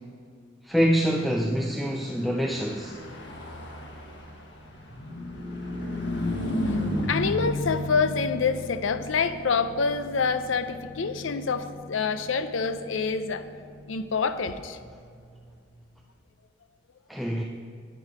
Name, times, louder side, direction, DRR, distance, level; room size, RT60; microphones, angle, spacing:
voice 1, 0.6-3.0 17.1-17.4, equal, ahead, 0 dB, 0.5 m, -25 dB
Car passing by / Truck, 2.1-15.8, left 1 dB, 65° left, 1.6 m, -35 dB
voice 2, 7.1-13.4 13.9-14.8, left 5 dB, 85° left, 11 dB, 0.6 m, -27 dB
10.5 x 9.3 x 5.0 m, 2.2 s
head